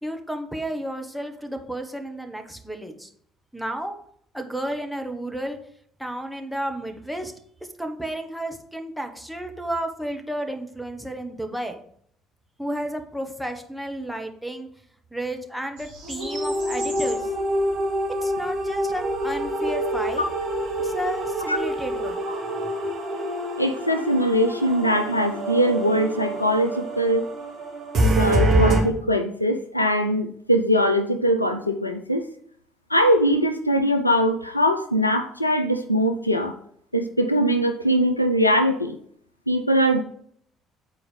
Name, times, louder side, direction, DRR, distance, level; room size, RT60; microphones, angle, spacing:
voice 1, 0.0-3.1 3.5-3.9 4.3-5.6 6.0-7.3 7.8-11.8 12.6-14.7 15.1-17.3 18.2-20.3 20.8-22.2 22.6-22.7, right 1 dB, ahead, 6 dB, 1.4 m, -32 dB
sound 1, 15.8-22.1, right 1 dB, 75° right, 3.9 m, -42 dB
sound 2, 16.0-28.8, right 1 dB, 55° right, 2.1 m, -26 dB
voice 2, 23.6-27.3 28.1-32.2 32.9-36.6 36.9-39.0 39.5-40.0, equal, 90° left, 7 dB, 0.5 m, -21 dB
8.9 x 4.5 x 5.1 m, 0.66 s
figure-of-eight pair, 50°, 0 cm